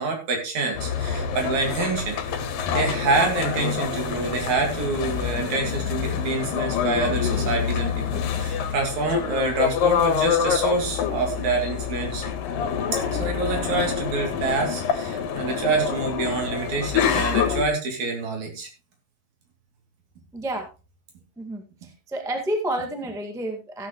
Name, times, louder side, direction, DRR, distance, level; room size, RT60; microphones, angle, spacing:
voice 1, 0.0-2.2 2.7-12.3 12.9-18.7, right 3 dB, 55° right, 2 dB, 4.0 m, -26 dB
sound 1, 0.8-17.6, left 7 dB, 80° left, 3.0 m, -26 dB
voice 2, 20.3-20.7 21.4-23.9, right 1 dB, 5° right, 3 dB, 0.5 m, -30 dB
15.5 x 9.3 x 3.1 m, 0.31 s
omnidirectional pair, 4.0 m